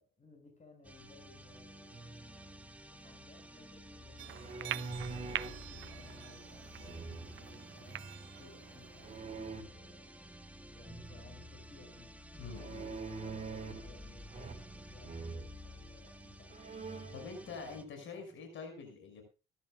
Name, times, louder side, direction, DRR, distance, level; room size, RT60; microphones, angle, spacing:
voice 1, 0.0-4.9 5.2-12.1 12.5-18.0 18.3-18.4, left 3 dB, 35° left, 6.9 m, -60 dB
sound 1, 0.8-17.8, equal, 5° right, 1.7 m, -51 dB
sound 2, 4.2-9.2, right 13 dB, 70° right, 0.7 m, -45 dB
sound 3, 4.3-5.6 6.8-7.5 9.0-9.6 12.5-13.9 14.3-14.8 15.0-15.5 16.1-16.2 16.5-17.3, right 4 dB, 35° right, 3.3 m, -44 dB
voice 2, 12.4-12.9 17.1-19.2, left 4 dB, 75° left, 6.4 m, -46 dB
21.5 x 12.5 x 2.4 m
cardioid pair, 90°, 20 cm